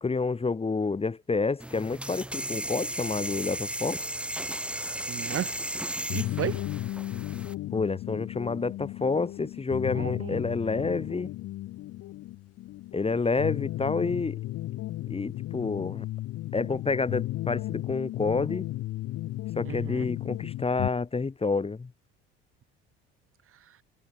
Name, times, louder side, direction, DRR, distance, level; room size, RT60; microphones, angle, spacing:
voice 1, 0.0-4.0 7.7-11.3 12.9-14.4 15.1-16.1 16.5-18.7 19.6-21.9, left 4 dB, 20° left, 1.5 m, -29 dB
sound 1, 1.6-7.5, right 1 dB, 5° right, 1.1 m, -35 dB
voice 2, 5.1-5.5 6.1-6.6 9.9-10.4 19.6-20.1 23.7-23.8, right 10 dB, 45° right, 2.2 m, -34 dB
sound 2, 6.1-20.9, left 16 dB, 55° left, 1.1 m, -34 dB
hypercardioid pair, 70°, 30 cm